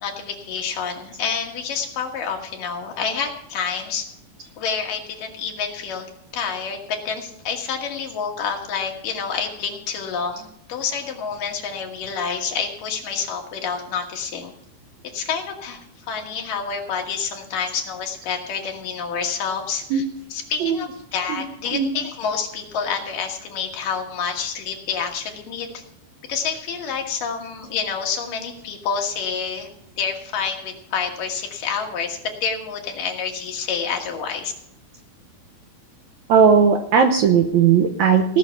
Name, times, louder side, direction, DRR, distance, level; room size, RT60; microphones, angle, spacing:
voice 1, 0.0-4.1 4.6-6.1 6.3-14.5 15.0-20.0 20.3-25.8 26.3-29.7 30.0-34.5, left 6 dB, 65° left, 2 dB, 3.0 m, -28 dB
voice 2, 36.3-38.4, right 6 dB, 75° right, 5 dB, 1.8 m, -17 dB
17.5 x 6.4 x 6.9 m, 0.72 s
omnidirectional pair, 4.3 m